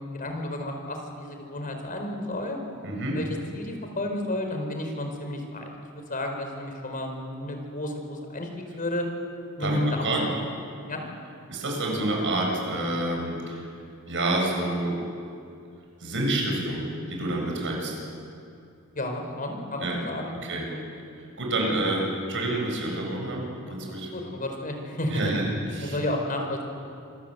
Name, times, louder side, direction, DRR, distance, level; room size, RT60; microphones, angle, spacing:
voice 1, 0.0-2.6 3.1-3.3 3.5-5.7 5.9-8.5 8.8-9.1 9.6-10.5 10.9-11.0 18.9-20.4 20.7-20.8 23.9-25.3 25.8-26.6, left 1 dB, 40° left, 3 dB, 4.6 m, -31 dB
voice 2, 2.8-3.2 9.6-10.3 11.5-13.6 14.1-14.9 16.0-17.9 19.8-19.9 20.4-20.6 21.4-23.4 23.7-24.1 25.1-25.4 25.7-26.0, right 1 dB, 60° right, -1 dB, 7.6 m, -28 dB
27.0 x 24.5 x 8.2 m, 2.5 s
head